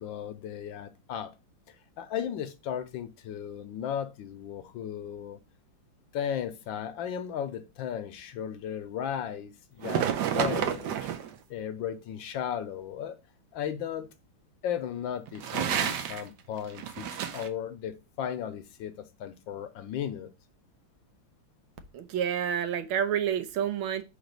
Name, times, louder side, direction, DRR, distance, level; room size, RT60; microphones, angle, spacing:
voice 1, 0.0-1.3 1.7-5.4 6.1-11.1 11.5-13.2 13.5-14.1 14.6-17.1 17.3-20.3, left 9 dB, 75° left, 1.3 m, -35 dB
sound 1, 9.8-11.3 15.3-16.3 16.6-17.5, right 9 dB, 65° right, 1.2 m, -30 dB
voice 2, 21.9-24.0, right 9 dB, 80° right, 1.6 m, -29 dB
5.0 x 4.0 x 5.2 m
omnidirectional pair, 2.2 m